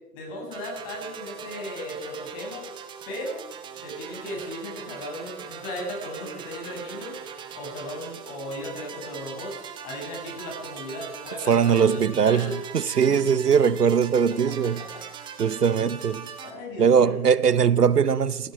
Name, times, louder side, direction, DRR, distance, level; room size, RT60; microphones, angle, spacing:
voice 1, 0.1-2.7 3.1-3.4 3.8-7.1 7.5-9.5 9.8-12.0 12.3-12.5 16.4-17.2, left 1 dB, 35° left, 6.9 m, -36 dB
sound 1, 0.5-16.5, right 7 dB, 10° right, 0.8 m, -41 dB
voice 2, 11.5-14.9 15.4-16.3 16.8-18.5, right 7 dB, 85° right, 0.8 m, -21 dB
16.5 x 15.5 x 4.9 m
figure-of-eight pair, 115°, 46 cm